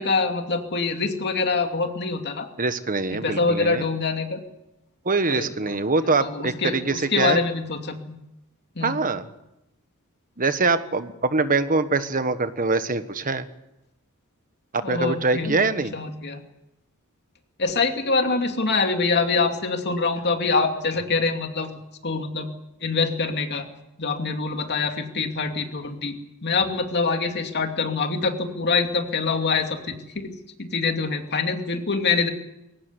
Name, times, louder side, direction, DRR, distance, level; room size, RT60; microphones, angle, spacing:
voice 1, 0.0-2.5 3.1-4.4 5.3-5.8 6.0-8.1 8.8-9.0 14.8-16.4 17.6-21.8 22.0-22.5 22.8-23.7 24.0-30.3 30.6-32.3, left 4 dB, 50° left, 5 dB, 2.6 m, -25 dB
voice 2, 2.6-3.8 5.0-7.4 8.8-9.3 10.4-13.5 14.7-16.0, right 3 dB, 40° right, 11 dB, 1.4 m, -24 dB
22.0 x 18.0 x 8.2 m, 0.90 s
head